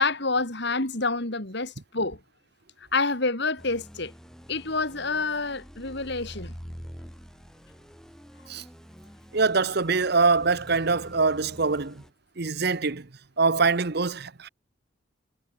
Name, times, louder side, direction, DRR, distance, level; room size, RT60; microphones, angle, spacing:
voice 1, 0.0-2.2 2.9-4.1 4.5-6.5, left 3 dB, 55° left, 2.9 m, -27 dB
sound 1, 3.6-12.1, equal, ahead, 7.6 m, -46 dB
voice 2, 9.3-12.0 12.4-13.1 13.4-14.5, right 4 dB, 50° right, 0.9 m, -24 dB
head